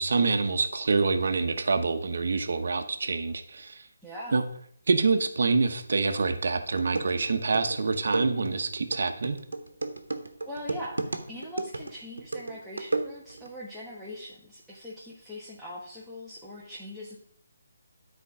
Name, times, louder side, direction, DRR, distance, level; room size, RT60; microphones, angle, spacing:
voice 1, 0.0-3.9 4.3-4.4 4.9-9.4, right 4 dB, 60° right, 6 dB, 1.0 m, -26 dB
voice 2, 4.0-4.4 10.4-17.2, left 1 dB, ahead, -9 dB, 1.2 m, -41 dB
sound 1, 6.4-6.5 6.8-13.5, right 2 dB, 85° right, 1.1 m, -34 dB
9.9 x 4.4 x 4.9 m, 0.64 s
figure-of-eight pair, 155°, 0 cm